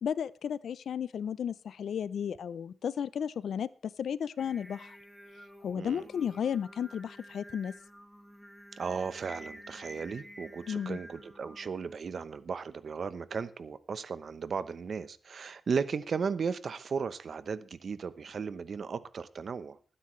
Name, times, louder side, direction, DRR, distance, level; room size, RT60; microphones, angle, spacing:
voice 1, 0.0-5.0 5.6-7.7 10.7-11.0, left 8 dB, 80° left, 18 dB, 0.5 m, -34 dB
Singing, 4.4-12.0, equal, 5° right, 1.7 m, -51 dB
voice 2, 5.7-6.1 8.8-19.8, right 5 dB, 60° right, 14 dB, 0.8 m, -35 dB
20.0 x 10.0 x 3.2 m, 0.38 s
cardioid pair, 100°, 0 cm